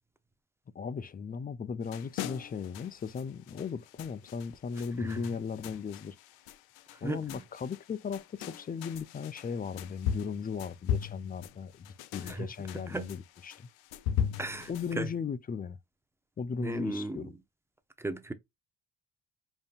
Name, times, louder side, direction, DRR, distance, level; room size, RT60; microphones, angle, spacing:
voice 1, 0.7-6.2 7.0-13.7 14.7-15.8 16.4-17.3, left 6 dB, 25° left, 0.4 m, -37 dB
sound 1, 1.8-14.9, left 9 dB, 90° left, 0.5 m, -38 dB
voice 2, 7.0-7.4 12.3-12.5 12.9-13.1 14.4-14.7 15.0-15.1 16.6-17.3 18.0-18.3, right 2 dB, 5° right, 0.8 m, -35 dB
5.2 x 2.6 x 2.5 m
supercardioid pair, 65°, 36 cm